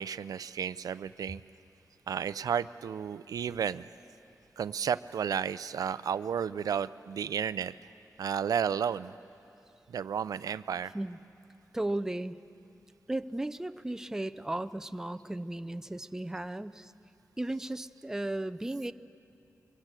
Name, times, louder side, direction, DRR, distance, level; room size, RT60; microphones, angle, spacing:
voice 1, 0.0-1.4 2.1-3.9 4.6-7.7 8.2-9.1 9.9-10.9, right 7 dB, 85° right, 15 dB, 0.5 m, -32 dB
voice 2, 11.7-12.3 13.1-16.9 17.4-18.9, right 1 dB, 10° right, 12 dB, 0.5 m, -35 dB
24.0 x 22.5 x 7.6 m, 2.6 s
wide cardioid pair, 130°, 6 cm